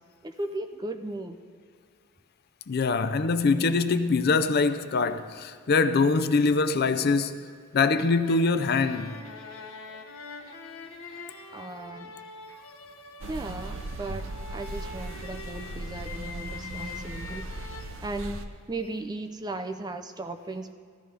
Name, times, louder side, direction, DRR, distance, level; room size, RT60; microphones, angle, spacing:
voice 1, 0.2-1.4 11.5-12.2 13.3-17.7 18.0-20.7, right 2 dB, 20° right, 0.5 m, -36 dB
voice 2, 2.7-7.4 7.7-9.2 17.3-17.4, left 4 dB, 50° left, 0.5 m, -24 dB
sound 1, 8.2-17.8, left 4 dB, 85° left, 1.0 m, -44 dB
sound 2, 13.2-18.5, right 2 dB, 80° right, 0.7 m, -38 dB
15.5 x 12.5 x 3.4 m
head